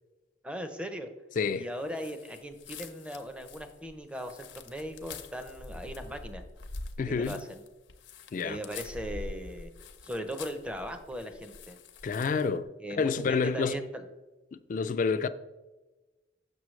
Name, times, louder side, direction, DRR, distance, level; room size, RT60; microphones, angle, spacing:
voice 1, 0.4-1.1 1.5-6.4 7.1-7.6 8.4-9.7 10.0-11.8 12.8-14.0, equal, 5° right, 0.5 m, -38 dB
voice 2, 1.4-1.7 7.0-7.4 8.3-8.6 12.0-13.8 14.5-15.3, left 5 dB, 45° left, 0.3 m, -29 dB
sound 1, 1.9-12.5, left 3 dB, 80° left, 0.6 m, -45 dB
6.7 x 6.1 x 3.1 m
head